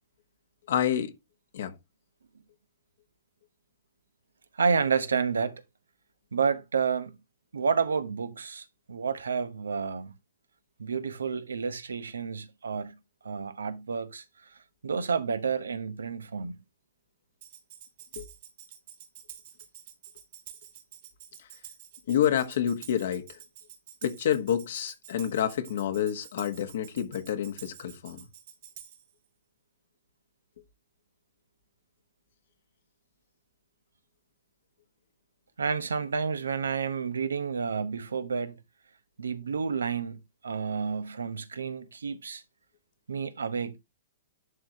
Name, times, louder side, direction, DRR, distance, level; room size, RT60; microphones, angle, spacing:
voice 1, 0.7-1.1 1.5-1.7 18.2-18.3 22.1-23.4 24.0-28.3, left 9 dB, 70° left, 1.3 m, -28 dB
voice 2, 4.5-5.6 6.3-7.2 7.5-10.1 10.8-13.0 13.2-14.5 14.8-16.6 35.6-38.6 39.2-42.4 43.1-43.8, right 5 dB, 90° right, 0.9 m, -30 dB
Tambourine, 17.4-29.1, right 10 dB, 60° right, 1.7 m, -49 dB
11.0 x 3.8 x 2.9 m
hypercardioid pair, 120°, 0 cm